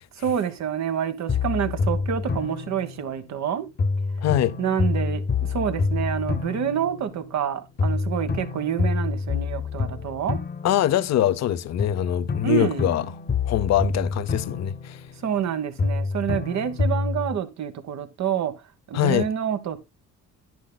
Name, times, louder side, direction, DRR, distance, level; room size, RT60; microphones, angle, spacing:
voice 1, 0.2-3.7 4.6-5.2 5.5-10.4 12.4-12.9 15.2-18.5 18.9-19.8, right 8 dB, 65° right, 1.3 m, -27 dB
sound 1, 1.3-3.4 3.8-7.5 7.8-11.4 11.8-15.5 15.8-17.4, left 4 dB, 35° left, 0.9 m, -27 dB
voice 2, 4.2-4.5 10.6-13.0 13.4-15.0 18.9-19.3, left 12 dB, 60° left, 0.6 m, -23 dB
10.5 x 10.0 x 2.2 m
cardioid pair, 90°, 30 cm